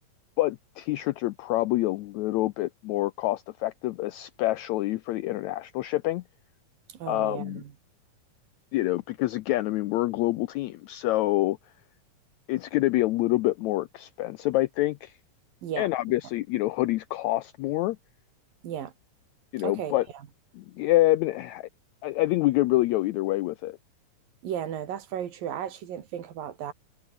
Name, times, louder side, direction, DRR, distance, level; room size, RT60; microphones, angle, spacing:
voice 1, 0.4-6.2 7.1-7.6 8.7-11.6 12.5-15.1 15.8-18.0 19.5-20.0 20.5-21.7 22.0-23.8, left 17 dB, 85° left, 1.6 m, -26 dB
voice 2, 6.9-7.7 15.6-15.9 18.6-18.9 19.6-19.9 24.4-26.7, right 9 dB, 90° right, 3.9 m, -34 dB
omnidirectional pair, 3.9 m